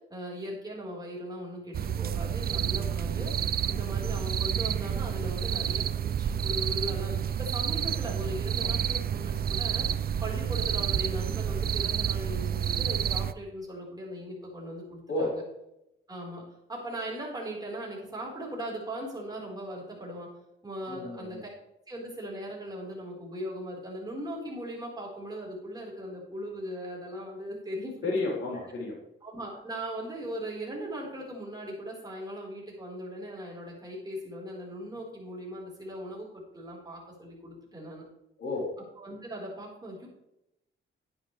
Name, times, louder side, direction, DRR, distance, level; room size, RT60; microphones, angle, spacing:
voice 1, 0.1-3.4 3.7-15.4 16.1-16.4 16.7-20.3 20.6-21.5 21.9-27.9 28.5-28.6 29.2-38.0 38.9-40.1, equal, 20° right, -4 dB, 4.4 m, -39 dB
sound 1, 1.7-13.3, right 9 dB, 45° right, 0.4 m, -29 dB
voice 2, 20.9-21.4 28.0-29.0 38.4-38.7, left 2 dB, 85° left, -3 dB, 4.0 m, -31 dB
10.5 x 9.9 x 3.3 m, 0.85 s
cardioid pair, 105°, 21 cm